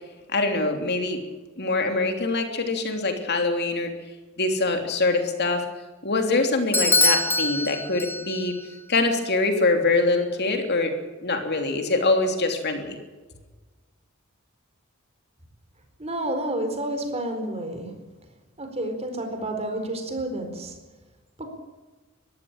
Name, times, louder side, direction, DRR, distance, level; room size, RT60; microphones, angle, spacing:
voice 1, 0.3-1.2 1.6-3.9 4.4-5.7 6.0-8.5 8.9-13.0, left 3 dB, 50° left, 5 dB, 3.2 m, -24 dB
Bell / Doorbell, 6.7-8.6, left 2 dB, 10° left, 1.2 m, -23 dB
voice 2, 16.0-17.9 18.6-20.8 21.4-21.5, right 1 dB, 30° right, 6 dB, 4.4 m, -30 dB
22.5 x 15.0 x 9.0 m, 1.3 s
head